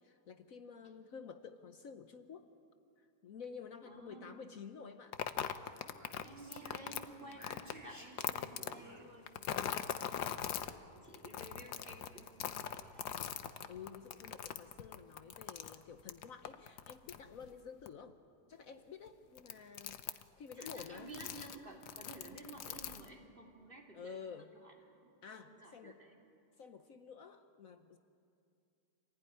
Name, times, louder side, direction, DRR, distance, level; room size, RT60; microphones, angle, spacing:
voice 1, 0.0-2.5 3.0-5.2 5.7-5.9 10.6-10.8 13.7-18.2 18.5-21.1 23.9-24.5 25.2-26.0 26.6-28.0, left 6 dB, 60° left, 8 dB, 1.3 m, -51 dB
voice 2, 3.9-4.4 6.2-13.2 20.5-26.2, right 2 dB, 30° right, 0 dB, 3.1 m, -54 dB
sound 1, 5.1-7.7 8.2-8.7 9.3-10.7 11.1-17.5 17.9-18.0 19.1-19.2 19.4-20.2 20.5-21.6 21.8-23.1, left 9 dB, 80° left, 1.4 m, -41 dB
Speech, 5.6-9.5, equal, 10° right, 2.7 m, -58 dB
27.5 x 16.0 x 10.0 m, 2.5 s
omnidirectional pair, 1.7 m